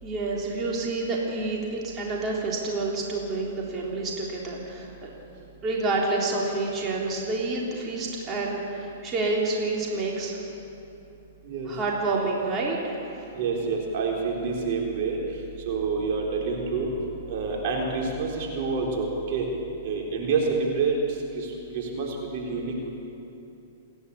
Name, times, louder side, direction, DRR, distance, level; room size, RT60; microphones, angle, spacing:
voice 1, 0.0-5.1 5.6-10.4 11.7-13.0, right 3 dB, 25° right, -3 dB, 3.6 m, -28 dB
voice 2, 13.3-15.2 15.7-16.9 17.3-19.5 19.8-21.0 21.3-22.9, right 4 dB, 50° right, -1 dB, 4.0 m, -28 dB
28.0 x 11.0 x 8.6 m, 2.9 s
hypercardioid pair, 115°, 0 cm